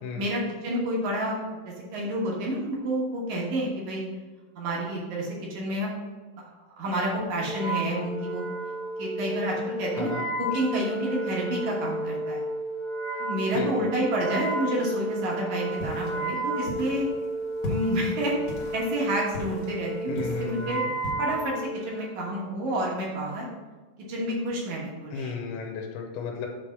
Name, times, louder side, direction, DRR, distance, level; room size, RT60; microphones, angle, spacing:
voice 1, 0.2-4.0 4.6-5.9 6.4-6.5 6.8-8.4 9.0-10.1 10.4-12.4 13.2-17.1 17.7-18.3 18.7-20.8 21.2-23.5 24.1-25.3, right 1 dB, 65° right, -4 dB, 1.9 m, -29 dB
Wind instrument woodwind instrument, 7.5-22.2, right 1 dB, 75° left, 1.2 m, -32 dB
voice 2, 13.5-13.9 20.1-20.9 25.1-26.5, left 6 dB, 90° left, 1 dB, 3.1 m, -34 dB
sound 1, 15.7-21.1, left 2 dB, 60° left, 2.0 m, -38 dB
8.0 x 3.4 x 5.8 m, 1.3 s
omnidirectional pair, 5.3 m